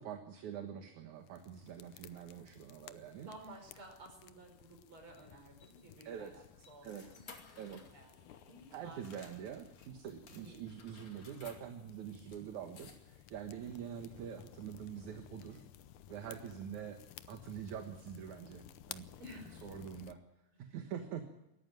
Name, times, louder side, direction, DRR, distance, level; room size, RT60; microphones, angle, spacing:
voice 1, 0.0-3.3 6.0-6.4 6.8-7.0 7.6-7.8 8.7-15.6 16.1-17.0 17.3-19.1 19.6-20.2 20.7-21.2, right 8 dB, 60° right, 5 dB, 2.5 m, -45 dB
sound 1, 1.2-20.2, left 11 dB, 85° left, 1.7 m, -57 dB
voice 2, 3.1-7.4 7.7-9.3 10.3-10.7 13.5-13.9 18.3-18.7 19.2-19.7 20.5-20.9, right 1 dB, 30° right, 4 dB, 5.6 m, -55 dB
sound 2, 5.2-9.9 10.3-13.3, left 5 dB, 50° left, 3.4 m, -59 dB
20.5 x 14.0 x 9.1 m, 0.93 s
omnidirectional pair, 4.6 m